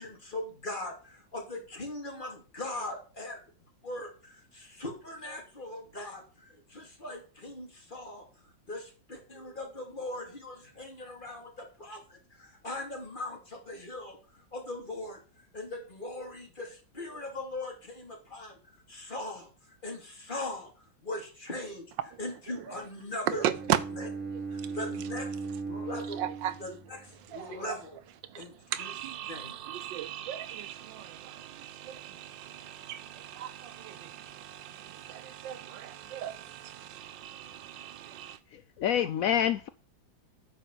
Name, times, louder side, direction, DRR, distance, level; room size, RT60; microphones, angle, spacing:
voice 1, 0.0-3.4 3.8-15.2 15.5-21.9 22.2-23.4 24.5-25.3 25.6-26.2 26.6-28.0 28.3-28.9 29.3-29.6, left 2 dB, 25° left, 2.8 m, -40 dB
Bowed string instrument, 23.3-27.4, right 4 dB, 5° right, 1.0 m, -38 dB
voice 2, 23.3-23.8 24.2-24.8 25.9-26.6 27.2-27.8 28.2-38.4, right 11 dB, 75° right, 1.3 m, -37 dB
voice 3, 38.5-39.7, left 9 dB, 85° left, 0.7 m, -27 dB
9.3 x 5.4 x 6.3 m
omnidirectional pair, 2.1 m